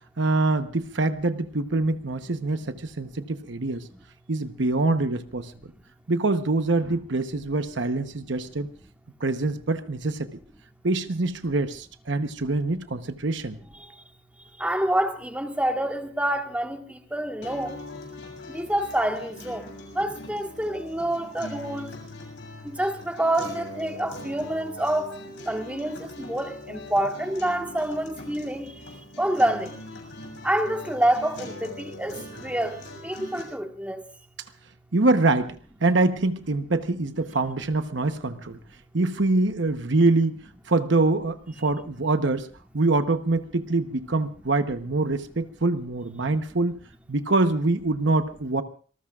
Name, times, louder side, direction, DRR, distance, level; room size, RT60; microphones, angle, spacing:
voice 1, 0.2-3.8 4.3-5.5 6.1-8.7 9.2-10.3 10.8-13.6 34.9-38.6 38.9-42.5 42.7-46.8 47.1-48.6, right 2 dB, 60° right, 1.0 m, -24 dB
voice 2, 14.6-17.8 18.5-19.7 19.9-21.9 22.6-25.2 25.4-29.8 30.4-34.0, right 1 dB, 5° right, 1.5 m, -27 dB
sound 1, 17.4-33.4, left 1 dB, 60° left, 6.7 m, -41 dB
26.5 x 19.5 x 2.5 m
head